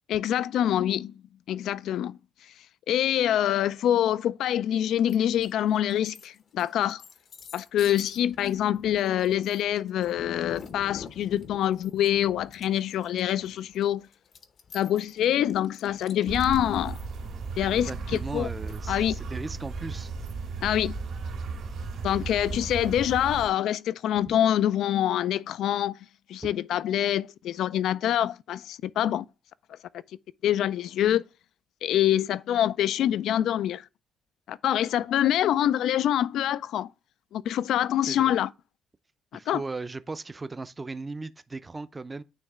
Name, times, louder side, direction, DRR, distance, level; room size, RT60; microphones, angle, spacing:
voice 1, 0.1-1.1 1.5-2.2 2.9-7.0 7.5-14.1 14.7-17.0 17.6-18.5 18.9-19.2 20.6-20.9 22.0-26.0 26.3-29.3 30.4-31.3 31.8-33.8 34.5-36.9 37.3-38.5 39.5-39.6, left 11 dB, 80° left, 0.3 m, -25 dB
sound 1, 5.1-5.5 5.9-19.2, left 6 dB, 55° left, 0.8 m, -47 dB
sound 2, 16.3-23.5, right 4 dB, 75° right, 2.4 m, -35 dB
voice 2, 17.9-20.1 24.3-24.4 38.1-38.3 39.3-42.2, right 3 dB, 25° right, 0.5 m, -37 dB
9.2 x 3.2 x 3.6 m
cardioid pair, 90°, 0 cm